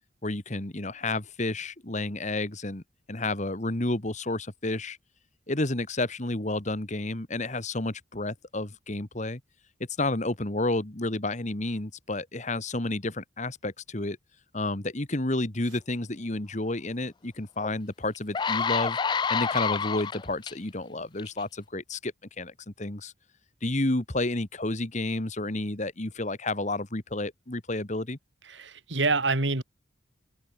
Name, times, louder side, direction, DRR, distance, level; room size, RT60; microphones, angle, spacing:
voice 1, 0.2-2.8 3.1-5.0 5.5-9.4 10.0-14.2 14.5-19.0 19.3-22.1 22.4-23.1 23.6-28.2, left 2 dB, 40° left, 1.8 m, -30 dB
sound 1, 17.6-17.7 18.1-20.5 21.2-21.4, left 6 dB, 25° left, 0.3 m, -28 dB
voice 2, 28.5-29.6, right 3 dB, 70° right, 2.7 m, -26 dB
head